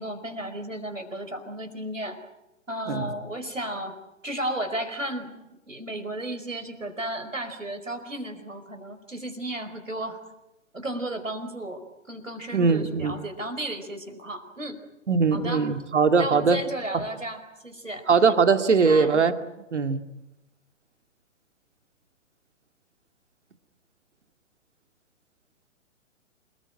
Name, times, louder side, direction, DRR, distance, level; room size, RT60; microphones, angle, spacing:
voice 1, 0.0-2.2 2.7-4.0 4.2-5.4 5.7-10.2 10.7-14.8 15.3-15.7 16.2-18.1 18.8-19.1, right 1 dB, 85° right, 8 dB, 4.9 m, -34 dB
voice 2, 12.5-13.1 15.1-16.6 18.1-19.3 19.7-20.0, right 5 dB, 65° right, 8 dB, 2.3 m, -21 dB
28.5 x 20.0 x 9.0 m, 0.97 s
figure-of-eight pair, 125°, 38 cm